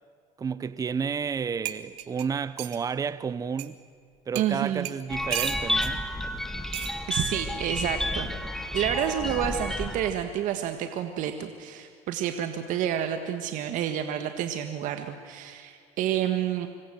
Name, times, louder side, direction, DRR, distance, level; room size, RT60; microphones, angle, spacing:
voice 1, 0.4-3.8 4.3-6.0, right 6 dB, 25° right, 0.8 m, -31 dB
sound 1, 1.3-1.4 1.6-2.8 3.6-3.7 4.3-4.5 4.8-5.9 6.7-7.0 8.1-8.3, right 16 dB, 80° right, 1.8 m, -35 dB
voice 2, 4.3-4.9 7.1-8.3 8.7-16.7, right 10 dB, 60° right, 1.7 m, -29 dB
sound 2, 5.1-10.1, left 1 dB, 5° left, 1.8 m, -30 dB
26.5 x 23.5 x 7.8 m
supercardioid pair, 110°, 15 cm